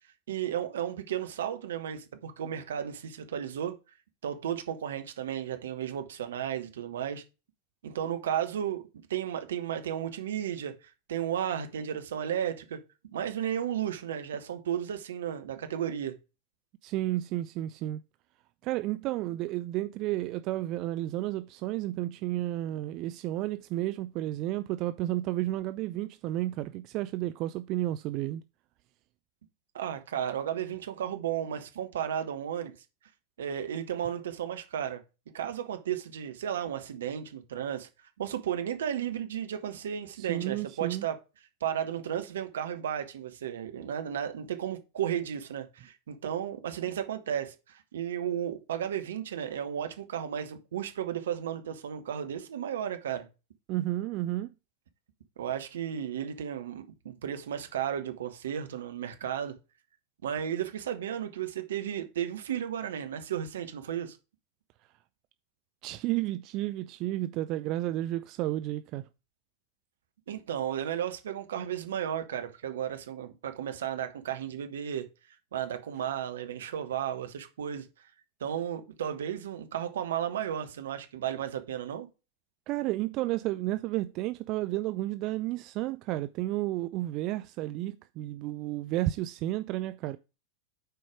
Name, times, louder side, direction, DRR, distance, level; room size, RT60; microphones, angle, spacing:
voice 1, 0.3-3.8 4.2-7.2 7.8-12.8 13.1-16.2 29.7-32.7 33.4-35.0 35.3-37.9 38.2-41.2 41.6-53.3 55.4-59.6 60.2-64.2 70.3-75.1 75.5-77.9 78.4-82.1, right 9 dB, 60° right, 1.1 m, -34 dB
voice 2, 16.8-18.0 18.6-28.4 40.2-41.1 53.7-54.5 65.8-69.0 82.7-90.2, right 15 dB, 40° right, 0.4 m, -32 dB
7.9 x 4.6 x 4.8 m
figure-of-eight pair, 90°, 0 cm